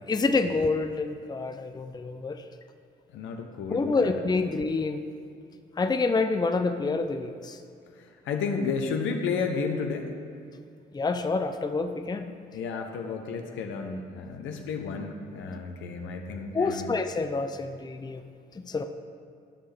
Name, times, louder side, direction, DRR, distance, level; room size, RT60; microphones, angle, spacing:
voice 1, 0.1-2.4 3.7-5.0 5.8-7.6 10.9-12.3 16.5-18.2 18.6-18.8, left 3 dB, 20° left, 8 dB, 0.5 m, -27 dB
voice 2, 3.1-4.2 7.9-10.1 12.5-17.0, left 5 dB, 75° left, 4 dB, 0.9 m, -32 dB
12.5 x 5.5 x 3.4 m, 2.4 s
hypercardioid pair, 50°, 20 cm